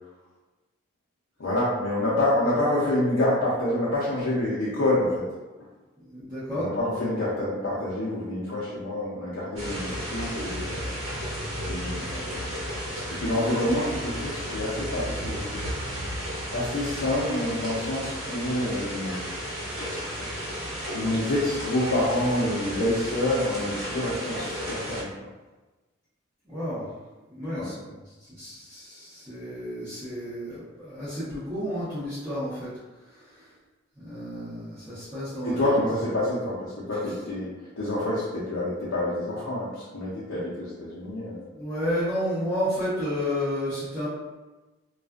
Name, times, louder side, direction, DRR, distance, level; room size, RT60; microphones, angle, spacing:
voice 1, 1.4-5.3 6.5-10.8 11.6-12.5 13.1-15.6 16.5-19.2 20.9-25.1 27.5-27.7 35.4-41.4, left 1 dB, 85° left, -8 dB, 0.6 m, -27 dB
voice 2, 6.0-6.7 26.5-26.9 27.3-28.0 28.3-32.7 33.1-33.5 34.0-35.6 41.6-44.1, equal, 20° right, -17 dB, 0.8 m, -31 dB
sound 1, 9.6-25.0, equal, 80° right, 1.0 m, -33 dB
2.4 x 2.3 x 2.3 m, 1.2 s
head